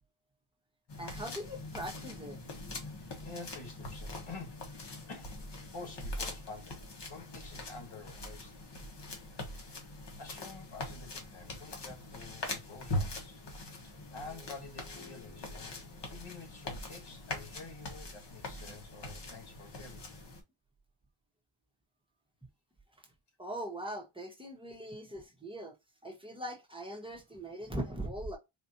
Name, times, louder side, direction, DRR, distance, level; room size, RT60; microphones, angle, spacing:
sound 1, 0.9-20.4, left 1 dB, 60° left, 1.2 m, -42 dB
voice 1, 1.0-2.4 23.4-25.8 26.0-28.4, right 1 dB, 10° right, 0.9 m, -41 dB
voice 2, 3.0-5.4 5.7-8.5 9.6-9.9 10.2-13.4 13.8-20.2, left 3 dB, 85° left, 1.7 m, -49 dB
sound 2, 14.2-18.7, left 6 dB, 35° left, 1.7 m, -59 dB
4.3 x 2.5 x 2.6 m
wide cardioid pair, 160°, 47 cm